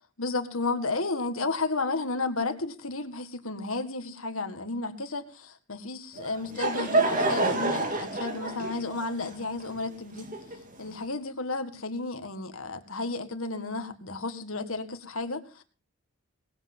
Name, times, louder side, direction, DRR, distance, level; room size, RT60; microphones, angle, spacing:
voice 1, 0.2-10.3 10.8-15.6, left 3 dB, 70° left, 8 dB, 1.9 m, -32 dB
Laughter / Crowd, 6.2-10.8, right 2 dB, 35° right, 2.5 m, -28 dB
20.0 x 8.0 x 5.6 m, 0.36 s
head